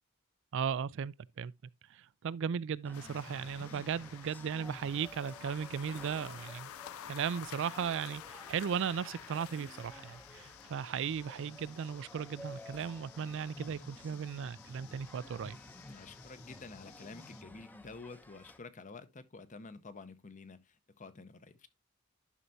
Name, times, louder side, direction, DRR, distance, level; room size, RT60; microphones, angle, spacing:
voice 1, 0.5-1.5 1.9-6.7 7.1-15.6, right 7 dB, 65° right, 0.4 m, -36 dB
sound 1, 2.8-18.6, left 1 dB, 10° left, 0.7 m, -53 dB
sound 2, 2.9-17.4, left 10 dB, 90° left, 0.4 m, -52 dB
voice 2, 15.8-21.7, left 3 dB, 40° left, 0.7 m, -50 dB
11.0 x 5.7 x 2.7 m
head